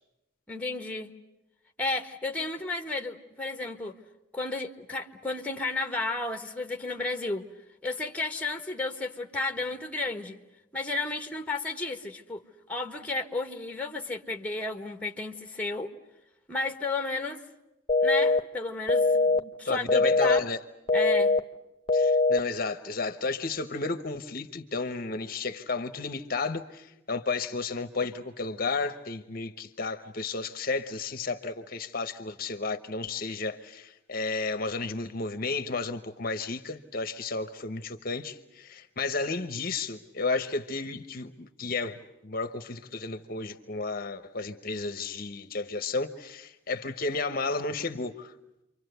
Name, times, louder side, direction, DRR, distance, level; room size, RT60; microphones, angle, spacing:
voice 1, 0.5-1.1 1.8-4.0 4.3-7.4 7.8-10.4 10.7-12.4 12.7-15.9 16.5-17.4 18.0-20.5 20.9-21.3, left 3 dB, 5° left, 1.5 m, -33 dB
sound 1, 17.9-18.4 18.9-19.4 19.9-20.4 20.9-21.4 21.9-22.4, left 3 dB, 25° left, 1.1 m, -22 dB
voice 2, 19.7-20.6 21.9-48.3, left 3 dB, 45° left, 1.0 m, -32 dB
29.0 x 24.5 x 8.0 m
head